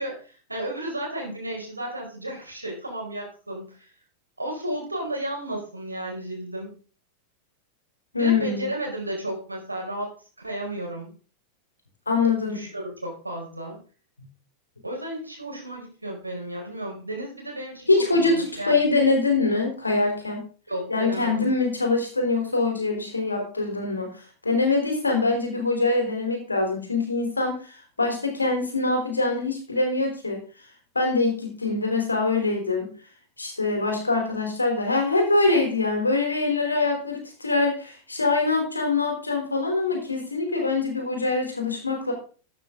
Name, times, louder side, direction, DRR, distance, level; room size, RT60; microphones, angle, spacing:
voice 1, 0.0-3.9 4.4-6.7 8.2-11.1 12.4-13.8 14.8-19.1 20.7-21.5, right 1 dB, 85° right, 0 dB, 4.6 m, -33 dB
voice 2, 8.1-8.7 12.1-12.6 17.9-20.4 20.9-30.4 30.9-32.9 33.4-42.1, left 3 dB, 80° left, 3 dB, 4.0 m, -24 dB
13.0 x 9.1 x 3.9 m, 0.39 s
figure-of-eight pair, 90°, 0 cm